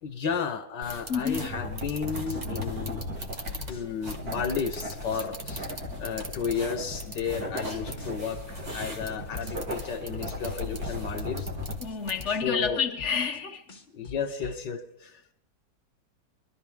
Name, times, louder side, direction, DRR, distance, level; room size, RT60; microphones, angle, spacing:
voice 1, 0.0-3.0 3.7-5.7 6.0-11.5 12.4-12.8 13.9-15.1, left 6 dB, 80° left, 1.7 m, -33 dB
sound 1, 0.8-12.5, right 1 dB, 25° right, 1.4 m, -43 dB
voice 2, 1.1-1.6 11.8-13.6, left 6 dB, 50° left, 1.1 m, -29 dB
sound 2, 1.3-11.8, left 1 dB, 60° right, 2.8 m, -37 dB
sound 3, 1.9-2.0 2.3-4.8 5.1-7.7 8.0-10.5 10.8-13.4 13.7-14.6, left 6 dB, 35° left, 1.4 m, -45 dB
22.5 x 13.0 x 3.7 m
omnidirectional pair, 1.9 m